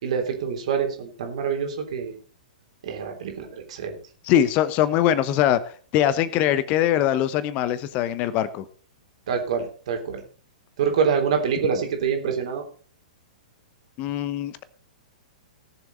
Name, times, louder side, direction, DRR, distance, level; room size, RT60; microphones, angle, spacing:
voice 1, 0.0-2.1 2.8-4.0 9.3-10.2 10.8-12.6, right 6 dB, 55° right, 3 dB, 3.3 m, -26 dB
voice 2, 4.2-5.6 5.9-8.6 14.0-14.6, left 11 dB, 35° left, 14 dB, 0.9 m, -22 dB
18.5 x 7.1 x 4.0 m, 0.41 s
figure-of-eight pair, 105°, 4 cm